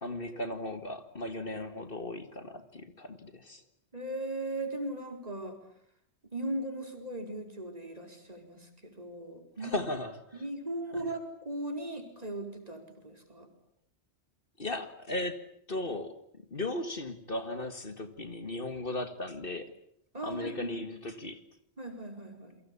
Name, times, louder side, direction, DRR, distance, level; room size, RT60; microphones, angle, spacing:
voice 1, 0.0-3.6 9.6-10.4 11.0-11.1 14.6-15.4 15.7-16.1 16.5-19.7 20.2-21.4, left 1 dB, 55° left, 10 dB, 2.2 m, -36 dB
voice 2, 3.9-5.6 6.3-9.8 10.4-13.5 20.1-20.8 21.8-22.6, right 1 dB, 35° right, 5 dB, 4.9 m, -38 dB
29.5 x 23.5 x 8.6 m, 0.67 s
omnidirectional pair, 1.1 m